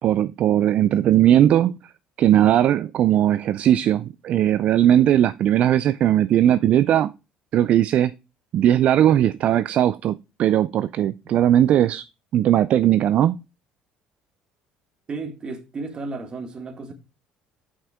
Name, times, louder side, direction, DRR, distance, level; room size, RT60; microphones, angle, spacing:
voice 1, 0.0-1.7 2.2-7.1 7.5-8.1 8.5-12.0 12.3-13.4, right 11 dB, 55° right, 0.3 m, -18 dB
voice 2, 15.1-16.9, right 3 dB, 35° right, 1.7 m, -33 dB
5.7 x 5.5 x 3.5 m
supercardioid pair, 100°, 3 cm